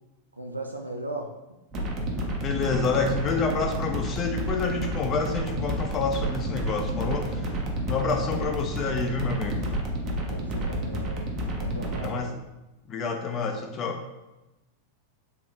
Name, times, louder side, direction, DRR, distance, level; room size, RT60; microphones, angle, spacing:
voice 1, 0.4-1.3 8.1-8.4 10.3-11.3 11.6-12.4, right 2 dB, 80° right, 3 dB, 0.3 m, -37 dB
sound 1, 1.7-12.1, right 1 dB, 35° right, 0.7 m, -30 dB
voice 2, 2.4-7.5 7.9-9.7 12.0-12.3 12.9-14.0, left 4 dB, 30° left, 3 dB, 0.4 m, -28 dB
3.9 x 2.8 x 3.1 m, 1.0 s
figure-of-eight pair, 90°, 0 cm